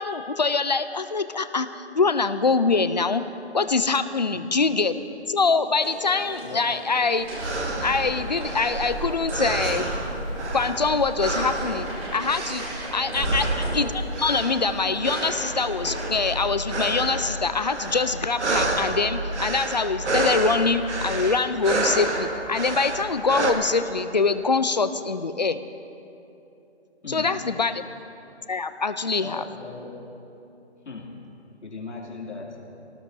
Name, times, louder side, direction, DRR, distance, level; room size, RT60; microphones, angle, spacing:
voice 1, 0.0-3.2 3.5-5.0 5.3-7.2 7.8-9.9 10.5-13.5 13.7-25.6 27.1-27.8 28.5-29.5, left 4 dB, 40° left, 12 dB, 0.4 m, -24 dB
sound 1, 5.8-16.3, right 1 dB, 10° right, 1.9 m, -38 dB
sound 2, 7.2-23.5, right 2 dB, 85° right, 2.0 m, -29 dB
voice 2, 13.1-13.4 27.0-27.5 29.2-30.0 30.8-31.2 31.6-32.7, left 4 dB, 90° left, -1 dB, 2.6 m, -38 dB
21.0 x 18.0 x 2.7 m, 2.8 s
hypercardioid pair, 170°, 34 cm